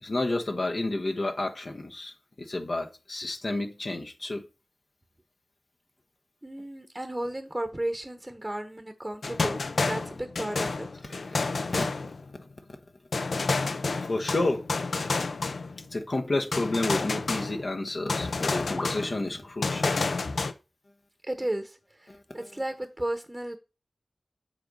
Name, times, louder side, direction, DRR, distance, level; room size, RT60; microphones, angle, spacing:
voice 1, 0.0-4.4 11.0-11.8 14.0-14.7 15.8-20.0 22.1-22.4, left 2 dB, 60° left, 1.1 m, -31 dB
voice 2, 6.4-10.9 21.2-23.6, right 1 dB, 20° right, 1.0 m, -34 dB
sound 1, 9.2-12.5 13.1-16.0 16.5-17.8 18.1-20.5, left 3 dB, 80° left, 0.6 m, -30 dB
7.7 x 3.9 x 5.3 m
cardioid pair, 45°, 0 cm